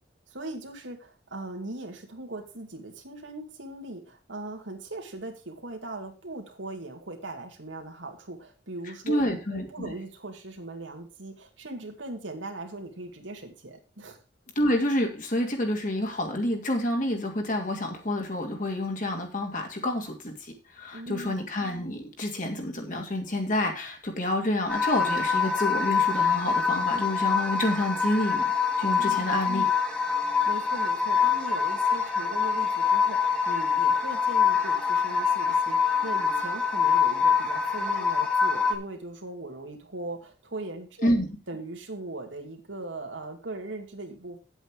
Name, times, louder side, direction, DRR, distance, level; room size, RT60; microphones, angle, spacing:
voice 1, 0.3-14.2 20.9-21.4 28.9-29.3 30.5-41.2 41.5-44.4, right 2 dB, 85° right, 3 dB, 2.3 m, -39 dB
voice 2, 9.1-9.9 14.6-28.5 28.8-29.7 41.0-41.3, left 1 dB, 45° left, 3 dB, 2.6 m, -28 dB
sound 1, 24.7-38.7, left 6 dB, 5° left, 1.6 m, -25 dB
9.3 x 8.1 x 4.8 m, 0.33 s
head